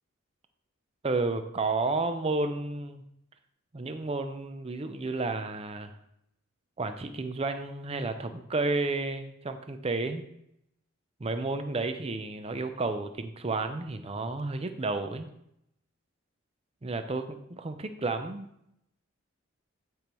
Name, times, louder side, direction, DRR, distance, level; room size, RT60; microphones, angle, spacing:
voice 1, 1.0-3.0 3.7-6.0 6.8-10.2 11.2-15.3 16.8-18.5, right 3 dB, 30° right, 9 dB, 0.5 m, -31 dB
10.5 x 5.3 x 3.0 m, 0.78 s
head